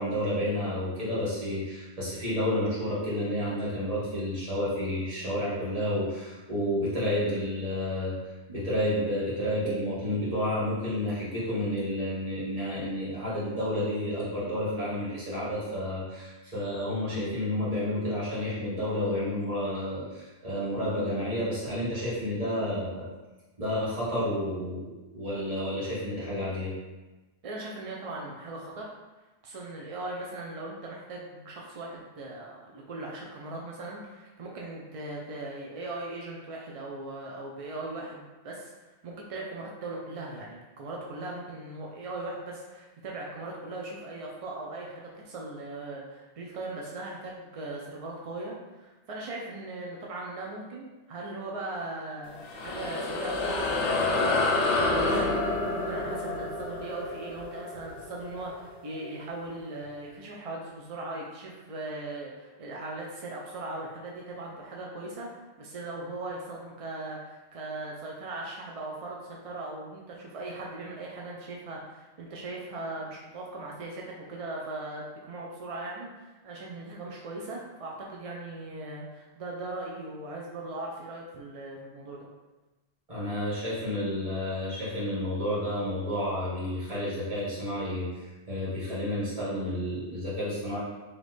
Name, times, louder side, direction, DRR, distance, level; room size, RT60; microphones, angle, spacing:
voice 1, 0.0-8.2 8.5-23.1 23.6-26.7 83.1-88.1 88.5-90.8, left 1 dB, 30° right, -10 dB, 1.7 m, -30 dB
voice 2, 27.4-28.9 29.4-52.4 52.6-65.3 65.6-82.3, right 2 dB, 55° right, -2 dB, 0.4 m, -39 dB
sound 1, 52.2-59.1, left 2 dB, 75° left, 0.9 m, -29 dB
4.0 x 3.0 x 3.2 m, 1.1 s
omnidirectional pair, 1.2 m